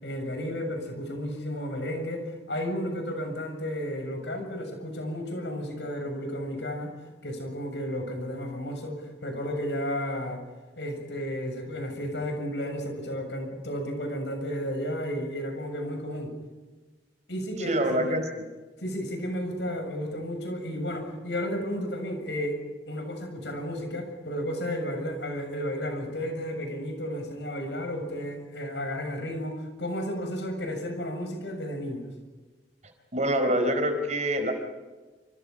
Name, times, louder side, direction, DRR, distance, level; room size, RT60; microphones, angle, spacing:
voice 1, 0.0-6.9 7.2-10.4 10.8-16.3 17.3-18.2 18.8-32.1, equal, 80° left, 4 dB, 7.2 m, -33 dB
voice 2, 17.6-18.4 33.1-34.5, right 1 dB, 40° right, 6 dB, 4.5 m, -25 dB
28.5 x 27.5 x 5.5 m, 1.3 s
head